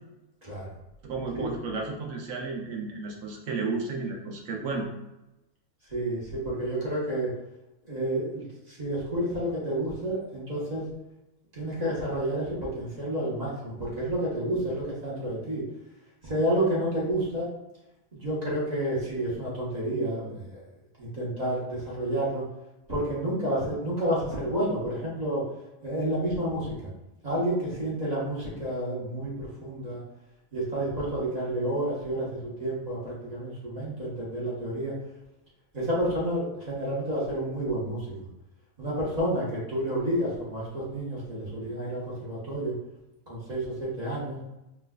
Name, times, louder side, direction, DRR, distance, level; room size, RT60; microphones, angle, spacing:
voice 1, 0.4-0.7 1.3-1.5 5.9-7.3 7.8-10.9 11.5-15.6 16.2-17.5 18.1-20.6 21.0-22.5 22.9-25.4 25.8-26.9 27.2-30.0 30.5-35.0 35.7-38.1 38.8-42.7 43.3-44.4, right 1 dB, 30° right, -6 dB, 1.0 m, -30 dB
voice 2, 1.0-4.9, right 4 dB, 65° right, 0 dB, 1.0 m, -33 dB
4.6 x 2.4 x 2.2 m, 0.96 s
omnidirectional pair, 1.6 m